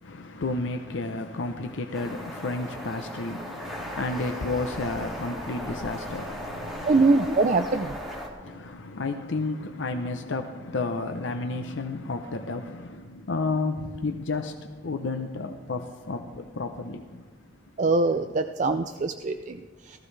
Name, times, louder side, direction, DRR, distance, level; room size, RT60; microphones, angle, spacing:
voice 1, 0.0-7.2 8.4-17.3, left 3 dB, 75° left, 0.7 m, -32 dB
sound 1, 1.9-8.3, equal, ahead, 2.3 m, -37 dB
voice 2, 6.9-8.0 17.8-20.0, right 3 dB, 40° right, 0.4 m, -23 dB
18.0 x 14.5 x 3.3 m
head